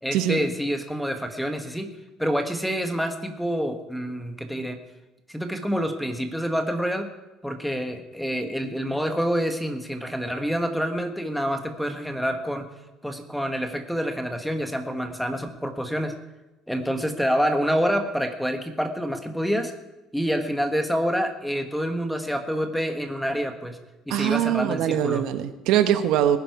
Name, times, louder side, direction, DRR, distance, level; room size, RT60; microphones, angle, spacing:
voice 1, 0.0-1.9 2.2-4.8 5.3-7.1 7.4-12.7 13.0-16.1 16.7-19.7 20.1-23.8 24.1-25.2, equal, ahead, 6 dB, 1.3 m, -27 dB
voice 2, 24.1-26.4, right 11 dB, 70° right, 9 dB, 1.1 m, -22 dB
19.5 x 11.0 x 4.8 m, 1.0 s
cardioid pair, 145°, 0 cm